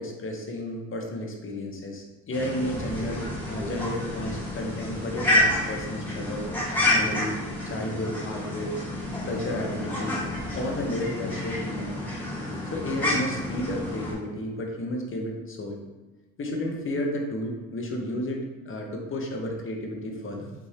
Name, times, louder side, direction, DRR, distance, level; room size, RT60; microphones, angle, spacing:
voice 1, 0.0-6.5 6.9-8.8 9.2-10.2 10.5-12.0 12.7-15.8 16.4-20.5, left 1 dB, 45° left, 1 dB, 0.9 m, -32 dB
sound 1, 2.3-14.1, left 1 dB, 5° left, 1.4 m, -29 dB
5.4 x 2.6 x 3.3 m, 1.2 s
cardioid pair, 90°, 30 cm